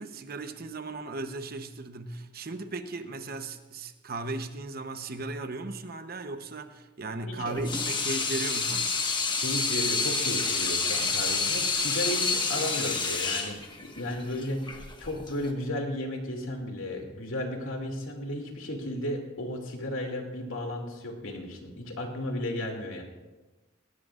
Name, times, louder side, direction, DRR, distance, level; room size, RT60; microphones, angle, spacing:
voice 1, 0.0-8.9, right 2 dB, 50° right, 8 dB, 1.0 m, -36 dB
voice 2, 7.3-7.6 9.4-23.0, left 1 dB, 90° left, 1 dB, 2.7 m, -34 dB
Water tap faucet / Sink (filling or washing), 7.5-15.5, left 4 dB, 25° left, 1.4 m, -28 dB
19.0 x 17.5 x 2.5 m, 1.2 s
head